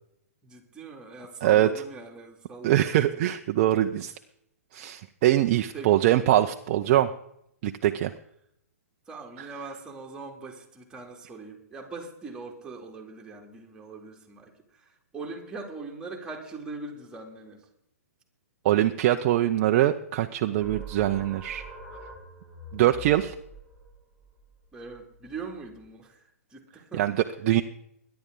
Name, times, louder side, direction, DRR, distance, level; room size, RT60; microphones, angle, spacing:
voice 1, 0.4-3.3 5.7-5.9 9.1-17.7 24.7-27.1, right 3 dB, 10° right, -1 dB, 2.7 m, -41 dB
voice 2, 2.6-4.1 4.7-7.1 7.6-8.1 9.4-9.5 18.6-21.6 22.7-23.3 27.0-27.6, right 13 dB, 40° right, 6 dB, 0.7 m, -23 dB
sound 1, 20.6-25.9, right 2 dB, 10° left, 5.5 m, -45 dB
21.5 x 10.5 x 3.8 m, 0.74 s
hypercardioid pair, 130°, 8 cm